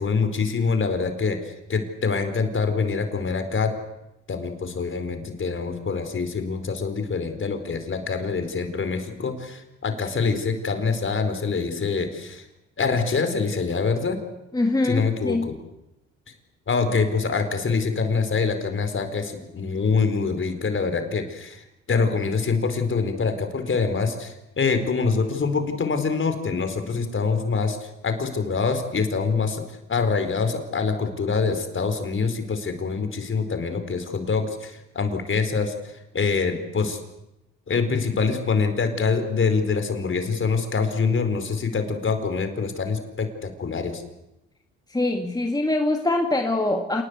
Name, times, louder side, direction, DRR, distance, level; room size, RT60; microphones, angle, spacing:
voice 1, 0.0-3.7 4.3-12.4 12.8-14.2 14.8-15.6 16.7-29.6 29.9-37.0 37.7-44.0, left 4 dB, 40° left, 7 dB, 4.6 m, -25 dB
voice 2, 14.5-15.5 44.9-47.0, left 2 dB, 15° left, 3 dB, 2.1 m, -23 dB
27.5 x 20.0 x 8.2 m, 0.91 s
cardioid pair, 90°, 30 cm